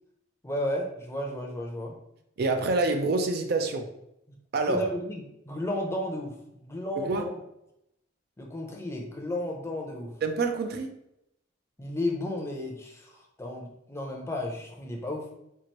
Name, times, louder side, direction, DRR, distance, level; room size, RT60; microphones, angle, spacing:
voice 1, 0.4-1.9 4.3-4.4 4.6-6.3 6.6-7.3 8.4-10.1 11.8-15.3, left 1 dB, 15° left, 0 dB, 0.6 m, -33 dB
voice 2, 2.4-3.9 4.5-4.8 7.0-7.3 10.2-11.0, right 3 dB, 55° right, 5 dB, 0.4 m, -27 dB
4.5 x 2.5 x 2.9 m, 0.82 s
head